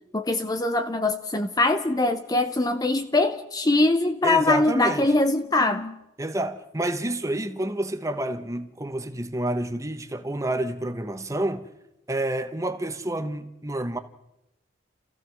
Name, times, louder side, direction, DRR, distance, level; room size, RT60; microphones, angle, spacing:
voice 1, 0.1-6.0, left 2 dB, 20° left, 0.7 m, -22 dB
voice 2, 4.2-5.1 6.2-11.7 12.1-14.0, right 1 dB, 15° right, 1.2 m, -29 dB
28.5 x 15.5 x 6.2 m
head